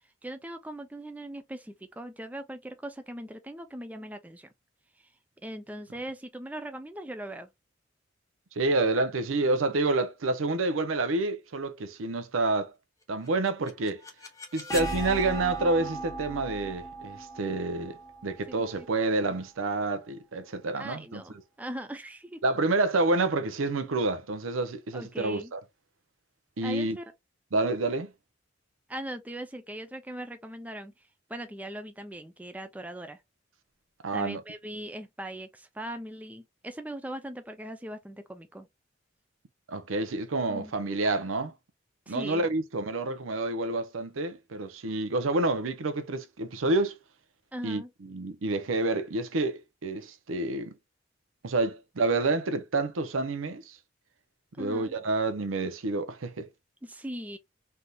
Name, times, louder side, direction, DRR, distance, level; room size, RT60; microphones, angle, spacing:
voice 1, 0.2-4.5 5.4-7.5 18.5-18.9 20.8-22.4 24.9-25.5 26.6-27.1 28.9-33.2 34.1-38.7 40.5-40.7 42.1-42.5 47.5-47.9 54.6-54.9 56.8-57.4, right 1 dB, 10° right, 0.4 m, -40 dB
voice 2, 8.6-12.7 13.1-14.0 14.5-18.0 18.2-21.2 22.4-25.6 26.6-27.0 27.5-28.1 34.0-34.4 39.7-41.5 42.1-47.0 47.6-50.7 51.4-53.8 54.6-56.5, right 2 dB, 90° right, 0.6 m, -28 dB
sound 1, 13.3-19.1, right 1 dB, 15° left, 0.8 m, -38 dB
3.3 x 2.7 x 2.3 m
head